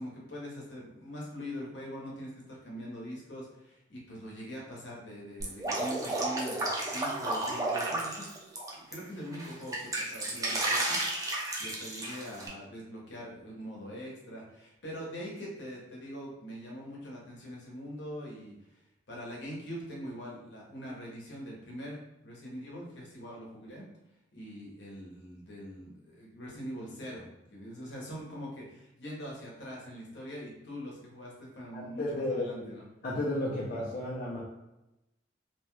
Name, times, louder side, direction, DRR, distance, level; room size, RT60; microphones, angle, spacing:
voice 1, 0.0-8.3 8.7-18.8 19.1-23.8 24.3-32.8, equal, 75° left, -3 dB, 1.0 m, -43 dB
Drip, 5.4-8.9 9.3-12.5, right 2 dB, 20° right, 0.5 m, -32 dB
voice 2, 31.7-32.7 33.0-34.4, left 1 dB, 50° left, -6 dB, 0.6 m, -33 dB
2.9 x 2.2 x 3.1 m, 0.92 s
head